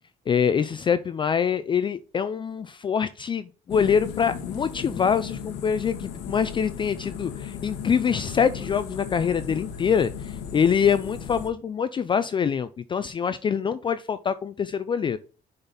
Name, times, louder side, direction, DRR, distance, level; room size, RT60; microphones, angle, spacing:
voice 1, 0.3-15.2, left 7 dB, 30° left, 12 dB, 0.4 m, -25 dB
sound 1, 3.7-11.5, left 7 dB, 85° left, 1.1 m, -36 dB
6.8 x 4.0 x 4.1 m, 0.36 s
cardioid pair, 110°, 17 cm